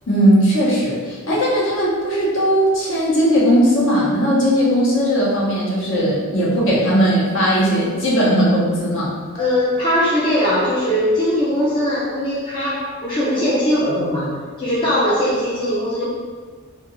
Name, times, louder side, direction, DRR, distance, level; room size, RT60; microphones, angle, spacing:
voice 1, 0.1-9.1, equal, 55° left, -7 dB, 0.8 m, -17 dB
voice 2, 9.4-16.1, equal, 20° left, -9 dB, 0.4 m, -20 dB
2.4 x 2.3 x 2.9 m, 1.5 s
head